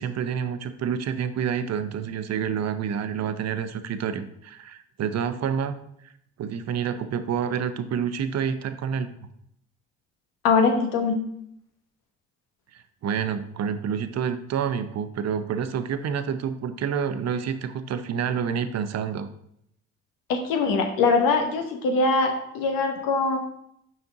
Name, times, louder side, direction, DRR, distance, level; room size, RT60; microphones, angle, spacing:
voice 1, 0.0-5.8 6.4-9.3 13.0-19.3, right 7 dB, 50° right, 10 dB, 0.6 m, -28 dB
voice 2, 10.4-11.2 20.3-23.4, left 4 dB, 75° left, 4 dB, 1.1 m, -22 dB
5.8 x 4.3 x 3.8 m, 0.72 s
hypercardioid pair, 55°, 34 cm